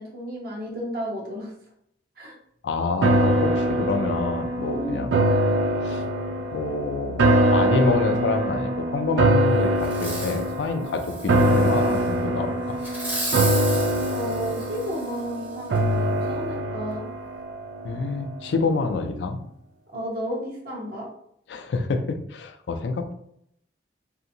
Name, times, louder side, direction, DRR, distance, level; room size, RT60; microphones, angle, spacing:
voice 1, 0.0-1.5 2.2-2.3 4.7-5.1 14.1-17.1 19.9-21.1, equal, 55° right, -2 dB, 0.8 m, -32 dB
voice 2, 2.6-5.2 5.8-6.0 6.5-12.8 17.8-19.4 21.5-23.1, left 3 dB, 70° left, 6 dB, 0.4 m, -27 dB
sound 1, 3.0-18.3 18.7-18.8, right 1 dB, 80° right, 0.4 m, -23 dB
Fireworks, 9.8-10.5 11.0-12.0 12.8-15.2 15.8-15.9, right 1 dB, 10° right, 0.6 m, -34 dB
2.7 x 2.5 x 2.7 m, 0.71 s
head